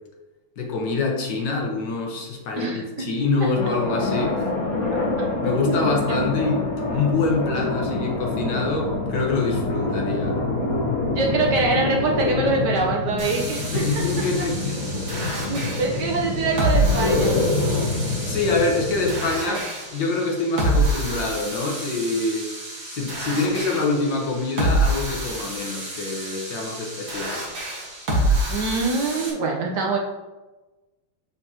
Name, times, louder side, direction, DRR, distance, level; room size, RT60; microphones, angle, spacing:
voice 1, 0.6-4.5 5.4-6.6 6.9-10.4 13.7-14.9 18.2-19.6 19.9-22.5 22.9-27.4, left 3 dB, 65° left, 0 dB, 1.6 m, -25 dB
voice 2, 2.6-3.1 5.5-5.9 11.1-13.8 15.4-17.4 19.5-19.6 28.5-30.0, right 3 dB, 60° right, 0 dB, 1.3 m, -24 dB
sound 1, 3.5-19.3, left 2 dB, 45° left, 1.6 m, -26 dB
sound 2, 13.2-29.3, right 1 dB, 45° right, 1.8 m, -28 dB
6.9 x 5.4 x 2.9 m, 1.1 s
omnidirectional pair, 2.3 m